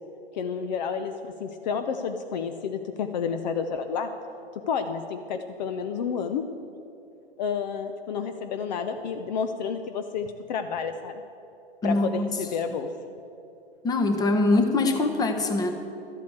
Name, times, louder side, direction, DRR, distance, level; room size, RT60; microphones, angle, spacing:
voice 1, 0.3-4.1 4.7-6.4 7.4-11.2 11.8-12.9, left 6 dB, 45° left, 7 dB, 0.7 m, -30 dB
voice 2, 11.8-12.3 13.8-15.7, left 2 dB, 10° left, 6 dB, 1.1 m, -23 dB
12.5 x 8.4 x 8.1 m, 2.8 s
figure-of-eight pair, 110°, 31 cm